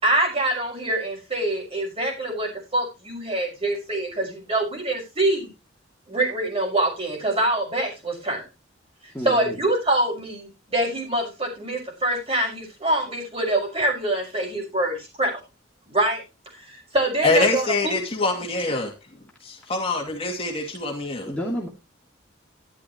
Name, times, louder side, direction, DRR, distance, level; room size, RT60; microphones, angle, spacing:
voice 1, 0.0-5.5 6.1-8.4 9.2-15.4 15.9-16.2 16.7-18.0, right 1 dB, 30° right, 6.1 m, -25 dB
voice 2, 9.1-9.6 21.3-21.7, equal, 5° left, 2.5 m, -30 dB
voice 3, 17.2-18.9 19.4-21.3, left 3 dB, 30° left, 2.5 m, -24 dB
13.0 x 11.5 x 3.0 m
head